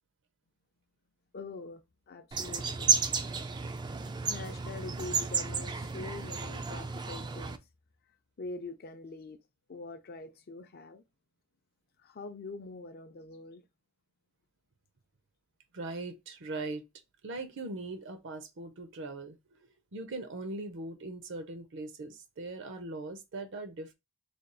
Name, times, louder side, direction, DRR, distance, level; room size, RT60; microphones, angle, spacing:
voice 1, 1.3-1.8 2.1-2.9 4.2-7.6 8.4-9.4 9.7-11.0 12.0-13.6, left 3 dB, 50° left, 0.5 m, -44 dB
sound 1, 2.3-7.6, right 5 dB, 20° right, 0.3 m, -32 dB
voice 2, 15.7-16.8 17.2-23.9, right 2 dB, 60° right, 0.6 m, -40 dB
3.3 x 2.3 x 3.9 m
head